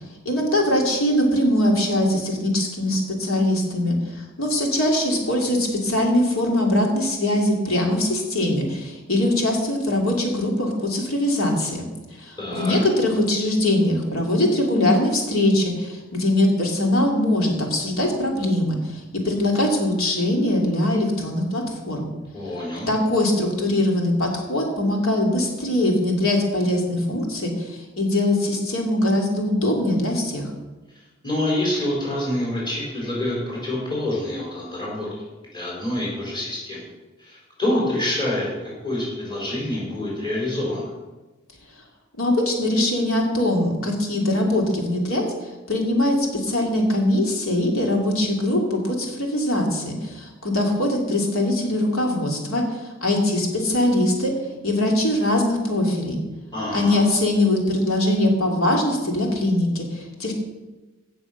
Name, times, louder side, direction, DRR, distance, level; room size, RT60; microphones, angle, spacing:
voice 1, 0.2-11.9 12.2-22.1 22.9-30.5 42.2-45.2 45.7-54.3 54.6-56.2 56.7-60.3, left 1 dB, 85° left, 0 dB, 2.9 m, -22 dB
voice 2, 12.4-12.7 22.3-22.9 31.2-35.1 35.5-36.8 37.2-38.5 38.8-40.9 56.5-57.0, left 1 dB, 25° left, -5 dB, 5.0 m, -26 dB
16.0 x 7.0 x 6.0 m, 1.2 s
head